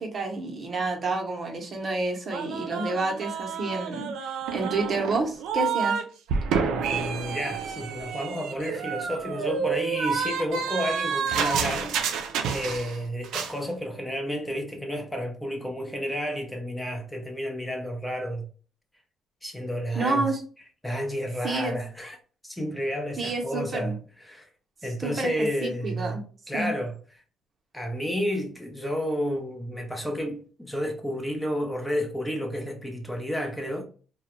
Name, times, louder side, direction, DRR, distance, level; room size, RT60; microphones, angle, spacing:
voice 1, 0.0-4.1 4.5-6.0 19.9-20.4 21.4-21.8 23.2-23.9 25.0-26.2 26.5-26.7, right 3 dB, 45° right, 0.7 m, -29 dB
sound 1, 2.3-6.0 6.3-13.0 13.2-13.5, right 6 dB, 90° right, 0.3 m, -29 dB
voice 2, 6.6-12.0 12.5-18.5 19.4-20.3 20.8-22.2 22.4-23.9 24.2-24.5 24.8-26.9 27.7-33.8, equal, 10° left, 0.6 m, -31 dB
2.3 x 2.1 x 2.9 m
cardioid pair, 90°, 0 cm